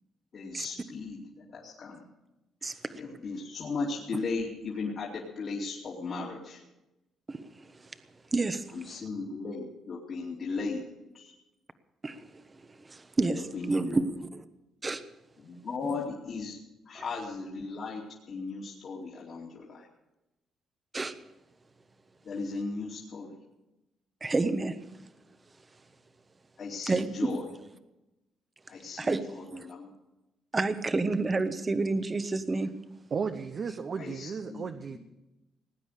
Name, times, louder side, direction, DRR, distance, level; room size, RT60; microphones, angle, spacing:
voice 1, 0.3-2.0 2.6-6.6 8.7-10.8 11.1-11.3 13.3-14.0 15.4-16.6 16.8-18.0 18.3-19.9 22.2-23.4 26.6-27.5 28.7-29.9 34.0-34.6 34.9-35.0, left 4 dB, 55° left, 2.8 m, -37 dB
voice 2, 2.6-2.9 7.3-7.7 8.3-8.6 12.0-12.3 12.8-14.3 14.8-15.0 20.9-21.1 24.2-24.8 26.9-27.3 29.0-29.2 29.5-29.7 30.5-32.7, right 3 dB, 25° right, 1.1 m, -29 dB
voice 3, 33.1-35.0, right 5 dB, 50° right, 0.9 m, -34 dB
19.0 x 9.4 x 6.6 m
cardioid pair, 90°, 0 cm